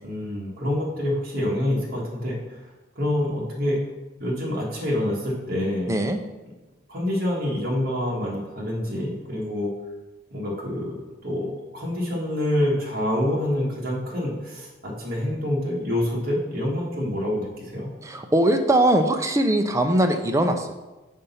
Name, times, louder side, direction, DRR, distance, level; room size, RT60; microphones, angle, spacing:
voice 1, 0.0-2.7 2.9-3.9 4.2-6.0 6.9-9.7 10.3-17.9, left 1 dB, 45° right, -4 dB, 1.6 m, -27 dB
voice 2, 5.9-6.2 18.0-20.7, right 1 dB, 15° right, 6 dB, 0.4 m, -21 dB
5.2 x 4.1 x 5.6 m, 1.1 s
head